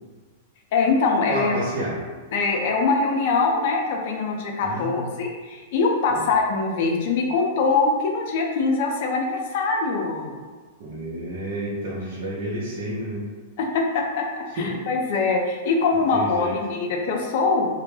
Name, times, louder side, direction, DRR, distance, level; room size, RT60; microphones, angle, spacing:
voice 1, 0.7-1.6 2.3-10.4 13.6-17.7, left 4 dB, 60° left, 1 dB, 0.5 m, -23 dB
voice 2, 1.3-2.0 4.6-5.1 6.1-6.3 10.8-13.3 14.5-14.9 15.9-16.6, right 1 dB, 65° right, -8 dB, 0.6 m, -30 dB
2.1 x 2.0 x 3.1 m, 1.4 s
hypercardioid pair, 125°, 0 cm